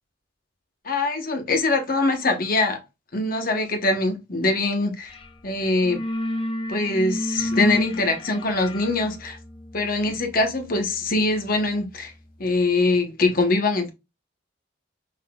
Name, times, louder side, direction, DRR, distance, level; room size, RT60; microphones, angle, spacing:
voice 1, 0.8-2.8 3.1-5.1 5.4-6.0 6.7-9.4 9.7-12.1 12.4-13.9, left 2 dB, 45° left, 0.9 m, -23 dB
sound 1, 5.1-5.3 5.6-12.2, left 1 dB, 25° left, 0.5 m, -32 dB
5.8 x 2.7 x 2.2 m
head